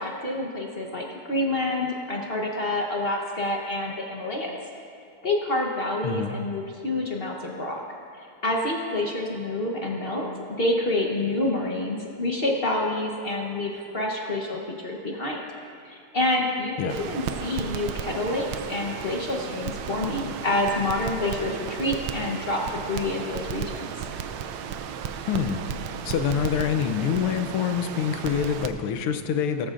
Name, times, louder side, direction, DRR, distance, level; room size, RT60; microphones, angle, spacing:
voice 1, 0.0-4.6 5.2-7.8 8.2-10.3 10.6-15.4 15.8-23.9, left 1 dB, 40° left, -1 dB, 0.9 m, -28 dB
voice 2, 6.0-6.4 16.8-17.0 25.3-25.6 26.0-29.7, left 7 dB, 85° left, 7 dB, 1.6 m, -26 dB
Crackle, 16.9-28.7, right 7 dB, 70° right, 1.2 m, -34 dB
18.0 x 14.0 x 2.5 m, 2.5 s
omnidirectional pair, 2.4 m